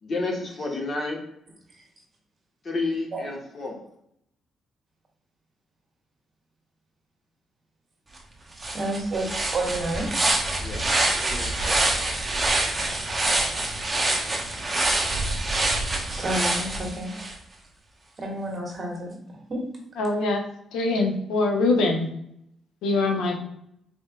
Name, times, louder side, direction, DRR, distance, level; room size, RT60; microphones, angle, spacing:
voice 1, 0.0-1.2 2.6-3.8 10.6-10.8 11.1-11.8 23.1-23.2, left 3 dB, 40° left, 1 dB, 1.1 m, -31 dB
sound 1, 8.2-8.3 8.6-17.3, right 2 dB, 20° right, 0.9 m, -26 dB
voice 2, 8.7-10.1 16.1-17.1 18.2-19.2 19.5-19.7, right 1 dB, 35° right, 0 dB, 1.2 m, -30 dB
voice 3, 20.0-20.4 20.7-22.1 22.8-23.4, left 3 dB, 85° left, 2 dB, 0.8 m, -23 dB
4.3 x 3.2 x 2.3 m, 0.74 s
cardioid pair, 90°, 0 cm